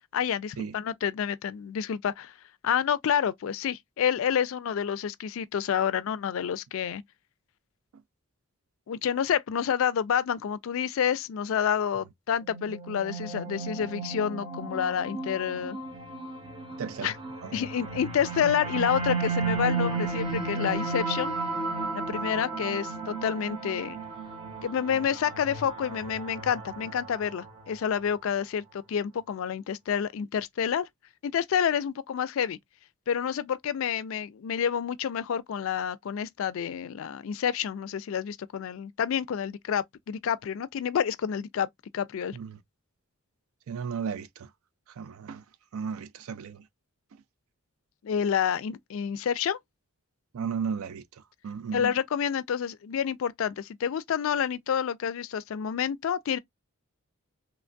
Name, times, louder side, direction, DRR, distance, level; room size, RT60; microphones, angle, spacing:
voice 1, 0.1-2.3 2.6-7.0 8.9-15.8 17.0-17.2 17.5-21.4 21.9-24.0 24.6-30.9 31.2-32.6 33.1-41.7 41.9-42.4 48.0-49.6 51.7-56.4, left 8 dB, 65° left, 0.3 m, -29 dB
sound 1, 12.4-27.8, right 4 dB, 25° right, 0.7 m, -34 dB
voice 2, 16.8-17.1 17.4-17.6 42.3-42.6 43.7-44.5 45.0-45.4 45.7-46.6 50.3-51.0 51.4-51.8, right 6 dB, 70° right, 0.4 m, -34 dB
3.0 x 2.2 x 2.5 m
head